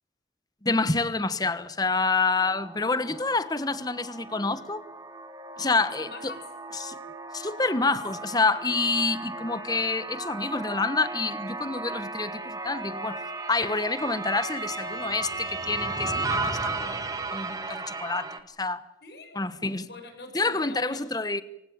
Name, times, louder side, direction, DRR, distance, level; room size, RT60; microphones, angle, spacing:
voice 1, 0.6-4.8 5.6-6.1 6.8-7.0 7.3-17.0 17.3-18.3 18.6-18.8 19.3-19.9 20.3-21.4, left 3 dB, 20° left, 1.2 m, -27 dB
sound 1, 2.4-18.4, right 3 dB, 20° right, 1.9 m, -35 dB
voice 2, 6.0-6.5 8.1-8.7 19.0-19.5 19.8-21.1, left 3 dB, 65° left, 6.8 m, -44 dB
26.0 x 16.5 x 8.9 m
head